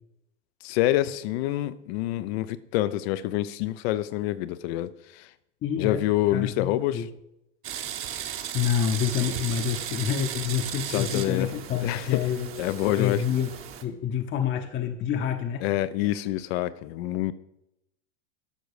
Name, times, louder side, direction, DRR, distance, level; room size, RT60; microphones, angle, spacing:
voice 1, 0.6-5.3 5.8-7.1 10.9-12.3 12.6-13.2 15.6-17.3, left 14 dB, 55° left, 0.7 m, -27 dB
voice 2, 5.6-6.0 6.3-7.1 8.5-13.5 13.8-15.6, left 8 dB, 30° left, 0.9 m, -28 dB
sound 1, 7.6-13.8, right 9 dB, 35° right, 1.1 m, -36 dB
12.0 x 6.2 x 4.9 m
hypercardioid pair, 100°, 37 cm